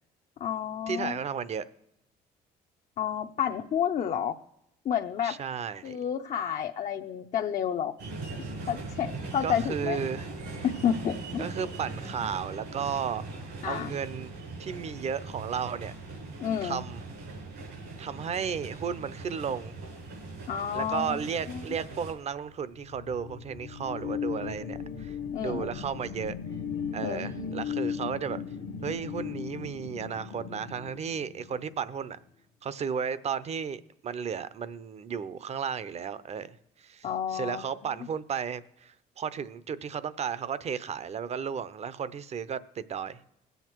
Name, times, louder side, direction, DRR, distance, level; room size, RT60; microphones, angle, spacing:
voice 1, 0.4-1.2 3.0-4.4 4.8-5.4 5.8-8.0 8.7-10.0 10.6-11.5 13.6-13.9 16.4-16.8 20.5-21.6 25.3-25.8 27.0-27.6 37.0-37.7, left 9 dB, 45° left, 0.7 m, -30 dB
voice 2, 0.9-1.7 5.2-6.0 9.4-10.3 11.4-13.2 13.7-14.3 14.6-15.9 16.6-17.0 18.0-19.7 20.7-25.2 25.4-26.4 26.9-28.4 28.8-32.2 32.6-43.2, right 7 dB, 40° right, 0.7 m, -34 dB
sound 1, 8.0-22.1, right 3 dB, 85° right, 4.6 m, -40 dB
sound 2, 22.6-31.8, left 7 dB, 70° left, 1.0 m, -37 dB
21.0 x 8.1 x 4.6 m
cardioid pair, 110°, 17 cm